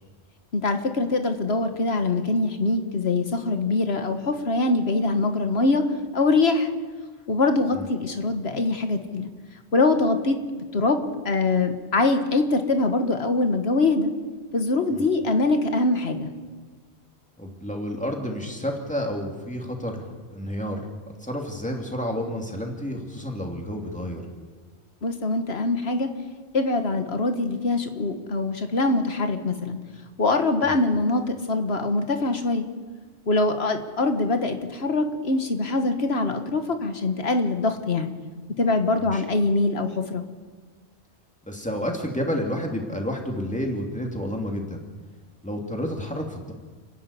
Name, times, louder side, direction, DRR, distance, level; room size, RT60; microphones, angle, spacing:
voice 1, 0.5-5.8 6.1-6.7 7.3-9.3 9.7-14.1 14.5-16.3 25.0-26.1 26.5-29.8 30.2-32.7 33.3-38.1 38.6-40.2, left 3 dB, 75° left, 7 dB, 1.8 m, -23 dB
voice 2, 17.4-24.2 30.6-30.8 39.0-39.2 41.5-44.8 45.4-46.5, equal, 5° left, 1 dB, 2.8 m, -30 dB
29.5 x 10.5 x 8.3 m, 1.4 s
omnidirectional pair, 1.1 m